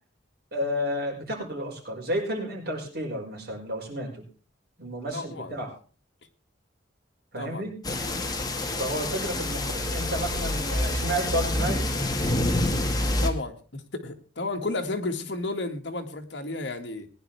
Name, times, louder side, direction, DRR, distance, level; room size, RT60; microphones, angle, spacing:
voice 1, 0.5-4.2 4.8-5.7 7.3-7.8 8.8-12.0, equal, 55° right, 5.5 m, -31 dB
voice 2, 5.1-5.6 7.4-7.7 13.2-17.1, left 2 dB, 65° left, 2.1 m, -32 dB
sound 1, 7.8-13.3, left 1 dB, 20° left, 1.8 m, -27 dB
20.5 x 10.5 x 3.4 m
head